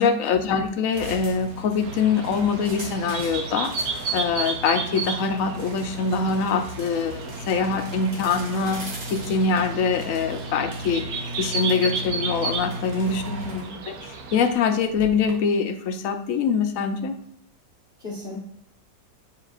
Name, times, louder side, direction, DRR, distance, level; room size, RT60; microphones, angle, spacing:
voice 1, 0.0-8.8 9.1-13.2 13.9-17.2, left 5 dB, 60° left, 6 dB, 1.0 m, -24 dB
sound 1, 0.9-15.3, right 1 dB, 50° right, 1.5 m, -37 dB
sound 2, 1.8-14.5, right 5 dB, 65° right, 1.2 m, -33 dB
voice 2, 13.3-13.8 18.0-18.4, left 2 dB, 35° left, -5 dB, 1.4 m, -34 dB
8.4 x 4.8 x 2.4 m, 0.74 s
omnidirectional pair, 1.8 m